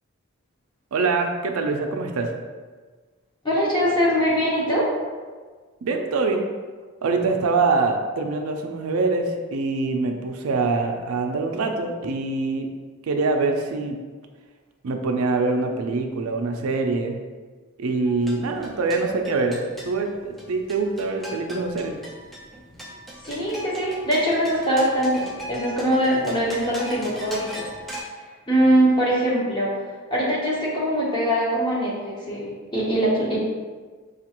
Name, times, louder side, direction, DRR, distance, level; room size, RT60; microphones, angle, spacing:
voice 1, 0.9-2.3 5.8-6.4 7.0-12.7 13.0-14.0 14.8-17.2 17.8-22.0, right 3 dB, 85° right, 4 dB, 0.4 m, -24 dB
voice 2, 3.4-4.9 23.2-27.6 28.5-33.4, equal, 20° left, -6 dB, 0.9 m, -22 dB
sound 1, 18.1-28.0, equal, ahead, 0.4 m, -39 dB
5.1 x 2.4 x 2.9 m, 1.4 s
head